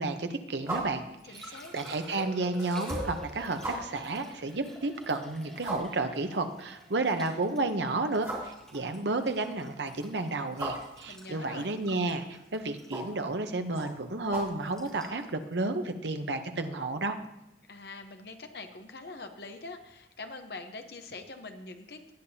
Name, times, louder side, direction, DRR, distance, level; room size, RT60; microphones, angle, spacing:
voice 1, 0.0-17.2, right 2 dB, 75° right, 7 dB, 0.9 m, -32 dB
sound 1, 0.6-15.3, right 1 dB, 15° right, 2.9 m, -42 dB
Liquid, 1.2-17.0 19.8-20.0, equal, 5° left, 1.9 m, -49 dB
voice 2, 1.3-1.7 11.1-11.7 17.7-22.1, left 3 dB, 65° left, 6 dB, 0.9 m, -44 dB
18.0 x 8.6 x 2.8 m, 0.87 s
head